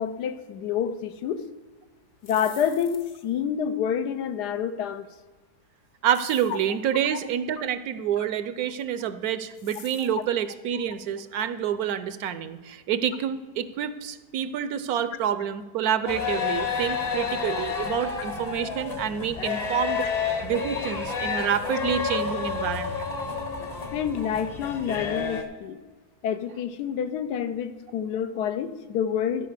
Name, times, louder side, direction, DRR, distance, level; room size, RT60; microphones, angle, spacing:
voice 1, 0.0-1.4 2.2-5.1 7.1-7.2 10.7-10.8 20.0-20.1 22.1-22.2 23.9-25.8 26.2-29.5, left 8 dB, 80° left, 10 dB, 1.3 m, -28 dB
sound 1, 2.1-3.3 6.1-6.7 9.5-10.2, left 6 dB, 65° left, 1.7 m, -47 dB
voice 2, 6.0-20.0 20.4-23.1, right 9 dB, 70° right, 13 dB, 1.0 m, -28 dB
sound 2, 16.1-25.4, left 5 dB, 30° left, 0.8 m, -30 dB
12.5 x 5.5 x 6.7 m, 1.3 s
omnidirectional pair, 1.8 m